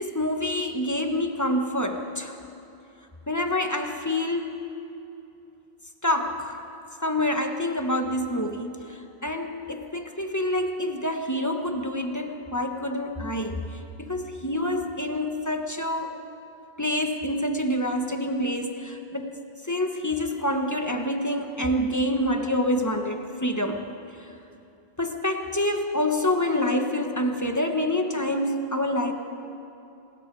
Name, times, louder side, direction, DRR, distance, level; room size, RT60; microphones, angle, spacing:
voice 1, 0.0-2.3 3.3-4.7 6.0-6.6 7.0-16.2 16.8-19.4 19.6-23.9 24.2-24.3 25.0-29.1, left 1 dB, 15° left, 4 dB, 1.3 m, -27 dB
27.0 x 20.5 x 4.8 m, 2.8 s
omnidirectional pair, 1.1 m